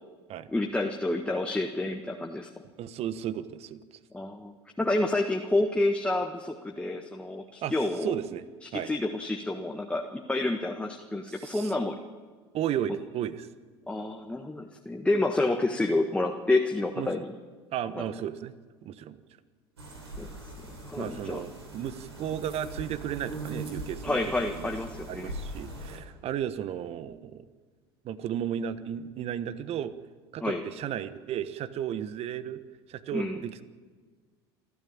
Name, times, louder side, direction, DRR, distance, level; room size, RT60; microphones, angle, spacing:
voice 1, 0.5-2.5 4.1-8.2 8.6-12.0 12.9-13.0 13.9-17.3 17.9-18.0 20.2-20.3 20.8-21.4 24.0-25.3 30.4-30.6 33.1-33.4, left 2 dB, 10° left, 3 dB, 1.5 m, -29 dB
voice 2, 2.8-3.8 7.6-7.7 8.0-8.4 8.7-8.9 11.3-11.7 12.5-13.5 17.0-17.2 17.7-18.5 18.8-19.2 21.0-24.7 25.1-27.5 28.0-29.9 30.3-32.6 32.9-33.6, right 10 dB, 50° right, 14 dB, 1.3 m, -34 dB
sound 1, 19.8-26.0, right 2 dB, 90° right, 4.0 m, -41 dB
28.0 x 12.5 x 8.8 m, 1.5 s
hypercardioid pair, 75°, 14 cm